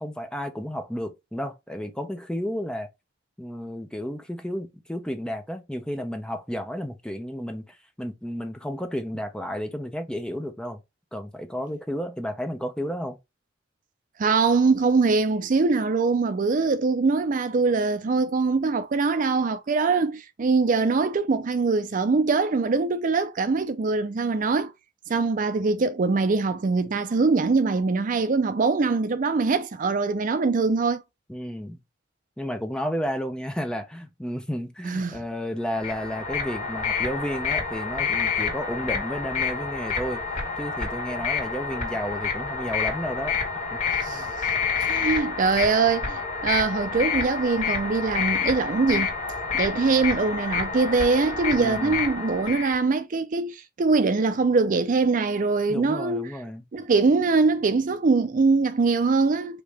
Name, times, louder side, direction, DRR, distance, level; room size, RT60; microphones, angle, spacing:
voice 1, 0.0-2.9 3.4-10.8 11.1-13.2 31.3-31.8 32.4-40.2 40.6-43.4 43.7-43.8 44.1-44.3 51.6-52.0 55.7-56.6, equal, 5° left, 0.7 m, -32 dB
voice 2, 14.2-24.7 25.1-31.0 34.8-35.2 44.0-44.2 44.8-49.1 49.5-56.3 56.7-59.6, right 4 dB, 45° right, 0.4 m, -23 dB
sound 1, 35.7-52.8, left 5 dB, 45° left, 1.7 m, -28 dB
5.1 x 2.8 x 3.3 m
head